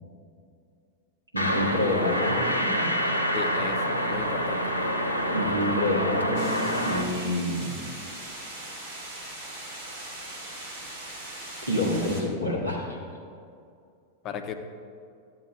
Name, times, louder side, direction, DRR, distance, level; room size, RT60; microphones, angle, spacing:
voice 1, 1.3-2.9 5.0-7.8 11.7-13.0, left 1 dB, 85° right, -4 dB, 2.3 m, -28 dB
sound 1, 1.4-7.0, equal, 85° left, 0.8 m, -27 dB
voice 2, 3.3-4.7 14.2-14.5, left 6 dB, 35° left, 6 dB, 0.8 m, -35 dB
sound 2, 6.3-12.2, right 1 dB, 50° right, 2.3 m, -40 dB
13.5 x 7.8 x 2.6 m, 2.4 s
figure-of-eight pair, 90°, 0 cm